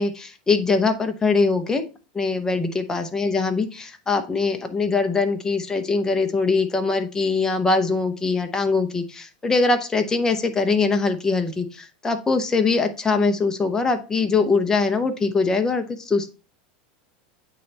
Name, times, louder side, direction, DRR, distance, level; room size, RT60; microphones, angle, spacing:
voice 1, 0.0-1.8 2.1-16.3, left 4 dB, 10° left, 7 dB, 0.7 m, -22 dB
8.4 x 3.3 x 4.0 m, 0.33 s
supercardioid pair, 145°, 5 cm